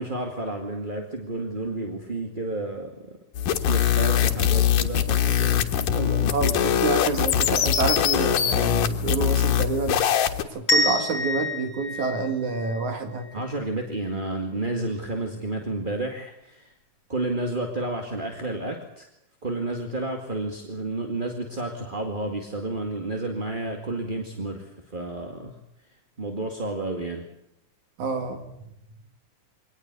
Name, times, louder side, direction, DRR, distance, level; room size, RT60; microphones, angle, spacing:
voice 1, 0.0-3.2 3.5-6.8 13.3-16.7 17.1-19.1 19.4-25.5 26.2-27.2, right 2 dB, 20° right, 3 dB, 1.7 m, -31 dB
sound 1, 3.4-10.4, left 10 dB, 85° left, 3.1 m, -22 dB
voice 2, 6.3-10.0 10.5-13.3 28.0-28.4, right 4 dB, 65° right, 7 dB, 3.4 m, -27 dB
sound 2, 10.7-13.5, left 2 dB, 45° left, 5.8 m, -27 dB
24.0 x 19.0 x 8.3 m, 0.82 s
omnidirectional pair, 3.7 m